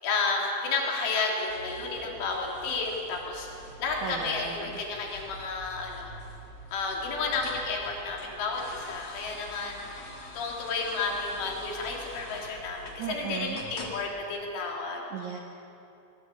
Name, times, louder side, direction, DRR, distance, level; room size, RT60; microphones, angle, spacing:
voice 1, 0.0-3.5 3.8-6.1 6.7-9.8 10.4-15.1, left 4 dB, 85° left, -1 dB, 6.0 m, -31 dB
sound 1, 1.5-14.0, left 2 dB, 45° left, 2.4 m, -46 dB
voice 2, 4.0-4.7 13.0-13.6 15.1-15.4, right 7 dB, 70° right, 2 dB, 1.8 m, -36 dB
23.0 x 22.0 x 8.4 m, 2.8 s
omnidirectional pair, 5.4 m